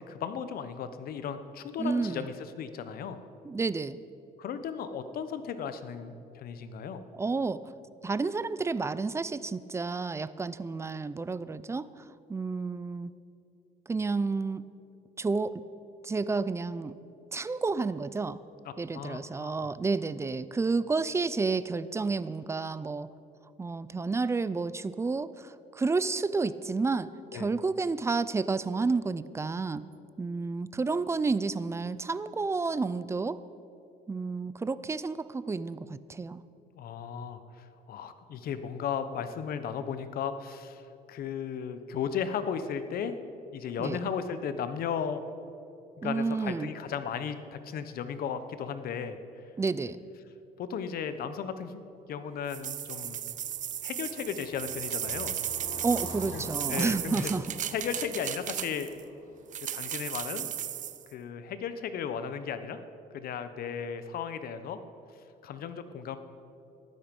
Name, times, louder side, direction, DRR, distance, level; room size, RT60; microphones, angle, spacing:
voice 1, 0.0-3.2 4.4-7.0 18.6-19.7 27.3-27.5 36.8-43.2 43.5-45.2 46.0-49.4 50.6-51.8 52.1-53.3 53.8-55.3 56.3-56.4 56.7-57.3 57.7-58.9 59.7-60.5 61.1-62.8 63.1-64.8 65.4-66.2, left 7 dB, 60° left, 11 dB, 1.0 m, -35 dB
voice 2, 1.8-2.3 3.4-4.0 7.2-7.6 8.0-13.1 13.9-14.6 15.2-15.6 16.0-16.9 17.3-18.4 18.8-23.1 23.6-29.8 30.2-33.4 34.1-36.4 43.8-44.0 46.0-46.7 49.6-50.0 55.8-57.4, right 4 dB, 15° right, 16 dB, 0.5 m, -30 dB
sound 1, 52.5-59.0 59.5-61.0, right 10 dB, 50° right, 0.7 m, -35 dB
Car passing by, 53.0-60.1, left 1 dB, 40° left, 3.2 m, -46 dB
14.5 x 12.0 x 5.4 m, 2.8 s
cardioid pair, 110°, 17 cm